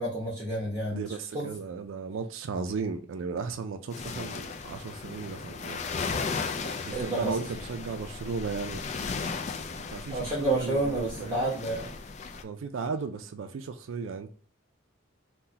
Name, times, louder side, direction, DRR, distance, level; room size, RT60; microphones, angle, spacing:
voice 1, 0.0-1.0 1.3-1.5 6.6-7.3 10.1-11.9, right 2 dB, 20° right, 1.0 m, -30 dB
voice 2, 0.9-5.9 6.8-8.8 9.7-11.5 12.4-14.3, right 5 dB, 90° right, 0.4 m, -35 dB
sound 1, 3.9-12.4, left 4 dB, 35° left, 0.3 m, -36 dB
3.8 x 2.2 x 2.7 m
head